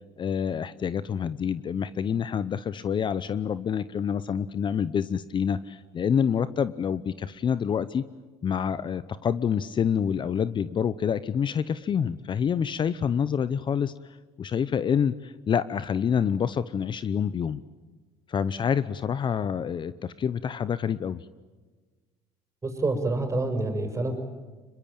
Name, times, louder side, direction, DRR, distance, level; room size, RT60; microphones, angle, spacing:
voice 1, 0.2-8.0 8.4-13.9 14.4-17.6 18.3-21.2, left 7 dB, 40° left, 15 dB, 0.8 m, -27 dB
voice 2, 22.6-24.1, right 2 dB, 25° right, 6 dB, 6.5 m, -27 dB
25.5 x 22.5 x 9.1 m, 1.3 s
supercardioid pair, 85°, 13 cm